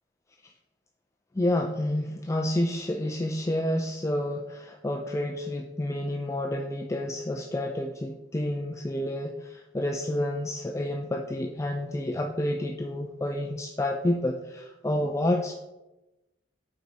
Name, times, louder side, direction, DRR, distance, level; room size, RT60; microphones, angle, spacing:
voice 1, 1.3-15.5, left 1 dB, 15° left, 2 dB, 0.3 m, -29 dB
8.0 x 4.7 x 4.0 m, 1.0 s
head